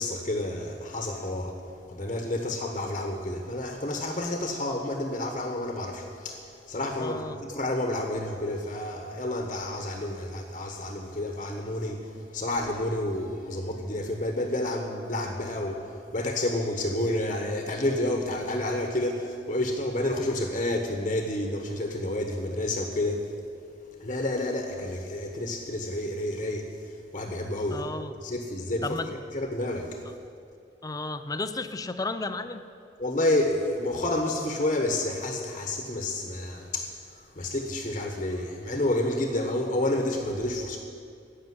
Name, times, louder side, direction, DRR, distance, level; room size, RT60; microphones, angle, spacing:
voice 1, 0.0-1.6 1.9-23.4 24.0-27.9 28.2-29.1 29.3-30.0 33.0-40.8, left 1 dB, 35° left, 3 dB, 1.2 m, -30 dB
voice 2, 7.0-7.4 27.7-28.1 28.8-29.1 30.8-32.6, left 3 dB, 20° left, 10 dB, 0.6 m, -33 dB
16.0 x 6.7 x 9.6 m, 2.4 s
head